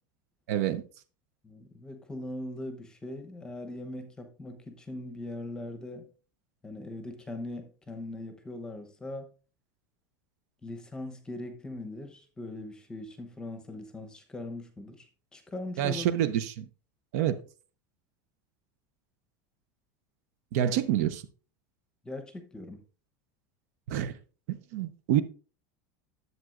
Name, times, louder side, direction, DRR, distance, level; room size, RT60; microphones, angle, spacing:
voice 1, 0.5-0.8 15.8-16.7 17.1-17.4 20.5-21.2 23.9-24.2 24.5-25.2, right 11 dB, 60° right, 0.7 m, -27 dB
voice 2, 1.4-6.1 6.6-9.3 10.6-16.3 22.0-22.8, left 2 dB, 10° left, 0.9 m, -40 dB
11.0 x 7.6 x 2.5 m
supercardioid pair, 175°, 10 cm